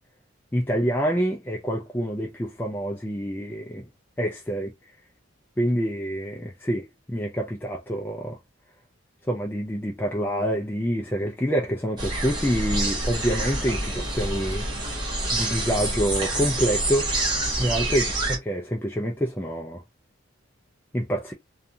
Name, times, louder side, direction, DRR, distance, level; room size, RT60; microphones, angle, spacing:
voice 1, 0.5-3.9 4.2-4.9 5.6-8.4 9.3-14.7 15.3-17.1 17.6-18.0 18.5-19.8 20.9-21.3, equal, 10° left, 0.3 m, -27 dB
sound 1, 12.0-18.4, right 2 dB, 20° right, 0.9 m, -27 dB
2.7 x 2.3 x 2.6 m
head